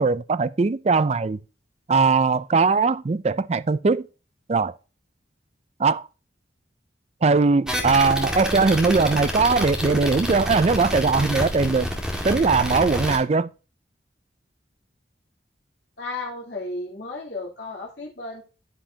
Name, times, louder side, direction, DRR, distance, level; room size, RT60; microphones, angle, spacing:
voice 1, 0.0-1.4 1.9-4.1 4.5-4.7 5.8-6.1 7.2-11.9 12.2-13.5, right 4 dB, 35° right, 0.4 m, -20 dB
sound 1, 7.7-13.2, equal, 5° right, 1.9 m, -28 dB
voice 2, 16.0-18.4, left 2 dB, 65° left, 3.0 m, -34 dB
15.0 x 5.5 x 2.8 m
head